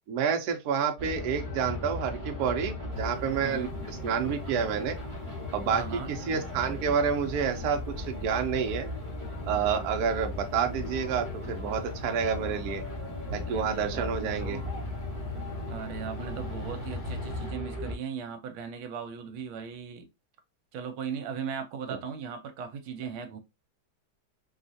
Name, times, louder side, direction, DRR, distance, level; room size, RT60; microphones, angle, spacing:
voice 1, 0.1-3.7 4.0-5.0 5.5-8.9 9.5-12.8 13.3-14.6 21.9-22.0, right 7 dB, 65° right, 1.0 m, -29 dB
sound 1, 1.0-18.0, left 2 dB, 25° right, 0.7 m, -37 dB
sound 2, 2.9-17.5, equal, 65° left, 2.2 m, -44 dB
voice 2, 3.4-3.7 5.7-6.1 13.5-14.7 15.7-20.1 20.7-23.4, right 6 dB, 85° right, 1.5 m, -38 dB
4.3 x 2.4 x 2.6 m
omnidirectional pair, 2.3 m